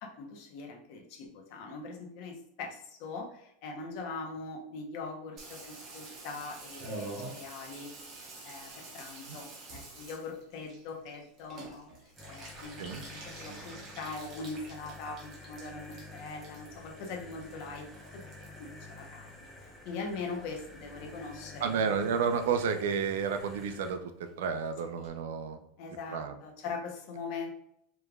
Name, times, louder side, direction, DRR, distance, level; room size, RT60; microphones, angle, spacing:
voice 1, 0.0-7.9 8.2-11.9 12.3-17.9 18.1-18.3 18.6-19.3 19.8-21.7 25.8-27.5, left 4 dB, 45° left, 1 dB, 0.9 m, -42 dB
Water tap faucet / Bathtub (filling or washing), 5.4-19.9 20.2-20.9 21.2-21.3 21.5-21.6 21.9-22.2 22.5-22.6 22.9-23.0 23.2-23.3 23.5-23.6 23.9-24.0 24.3-24.4 24.6-24.7 25.0-25.1, right 2 dB, 30° right, 1.0 m, -48 dB
sound 1, 12.2-23.9, left 2 dB, ahead, 0.7 m, -49 dB
voice 2, 21.6-25.6 26.1-26.3, right 6 dB, 85° right, 8 dB, 0.5 m, -31 dB
4.9 x 3.3 x 2.4 m, 0.75 s
supercardioid pair, 170°, 0 cm